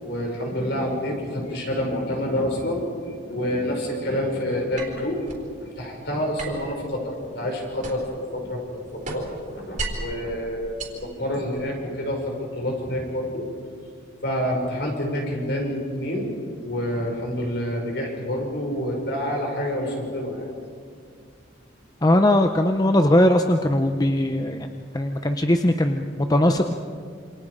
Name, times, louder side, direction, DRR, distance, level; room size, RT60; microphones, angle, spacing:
voice 1, 0.0-5.3 5.8-12.2 12.6-13.4 14.2-16.3 16.6-20.5, equal, 60° left, 0 dB, 5.8 m, -28 dB
sound 1, 4.8-5.5 6.4-8.2 8.6-10.2 10.6-11.7, right 3 dB, 40° right, 4.0 m, -35 dB
voice 2, 22.0-24.7 24.9-26.7, left 1 dB, 20° left, 6 dB, 0.7 m, -20 dB
27.5 x 27.0 x 5.0 m, 2.2 s
head